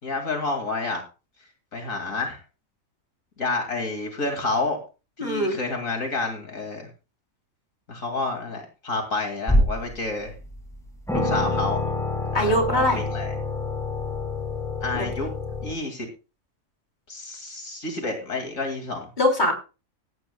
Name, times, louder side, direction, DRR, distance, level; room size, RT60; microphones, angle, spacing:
voice 1, 0.0-1.0 1.7-2.4 3.4-4.8 5.2-6.9 7.9-10.3 11.1-11.9 12.3-13.3 14.8-15.3 15.6-16.1 17.1-19.1, left 3 dB, 70° left, 3 dB, 2.9 m, -29 dB
voice 2, 5.2-5.6 12.3-13.0 14.9-15.1 19.2-19.5, left 1 dB, 35° left, 2 dB, 3.8 m, -22 dB
sound 1, 9.5-10.0 10.5-10.6 11.1-15.7, left 2 dB, ahead, 5.7 m, -26 dB
17.5 x 15.0 x 2.3 m, 0.32 s
omnidirectional pair, 1.4 m